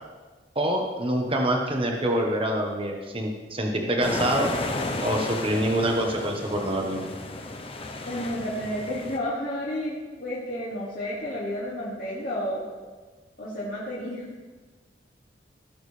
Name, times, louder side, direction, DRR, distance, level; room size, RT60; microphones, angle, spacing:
voice 1, 0.5-4.5 5.0-7.0, right 1 dB, 30° right, 2 dB, 1.2 m, -25 dB
sound 1, 4.0-9.2, left 2 dB, 30° left, 0.8 m, -33 dB
voice 2, 8.1-12.6 13.4-14.3, equal, 50° left, -8 dB, 2.2 m, -31 dB
17.5 x 6.4 x 3.3 m, 1.4 s
head